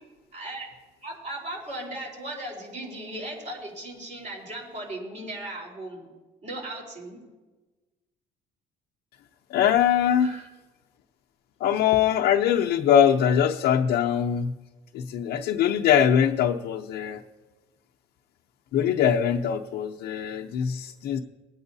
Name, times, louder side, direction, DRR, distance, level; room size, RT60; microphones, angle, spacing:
voice 1, 0.3-0.7 1.0-6.1 6.4-7.2 10.2-10.5, right 1 dB, 45° right, -2 dB, 4.1 m, -37 dB
voice 2, 9.5-10.4 11.6-14.5 14.9-17.2 18.7-21.2, left 9 dB, 75° left, 0 dB, 0.7 m, -22 dB
21.5 x 8.8 x 2.7 m, 1.2 s
cardioid pair, 110°, 17 cm